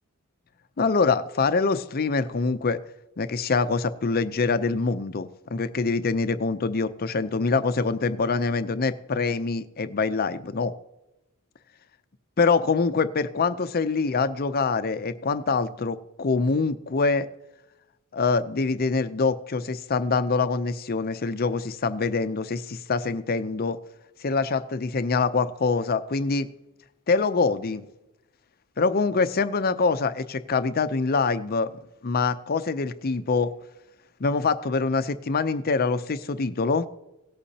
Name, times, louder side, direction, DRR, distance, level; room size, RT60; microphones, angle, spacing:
voice 1, 0.8-2.8 3.2-10.7 12.4-17.3 18.1-23.8 24.2-26.5 27.1-27.8 28.8-33.5 34.2-36.9, left 4 dB, 45° left, 0.6 m, -25 dB
17.5 x 8.3 x 2.8 m
head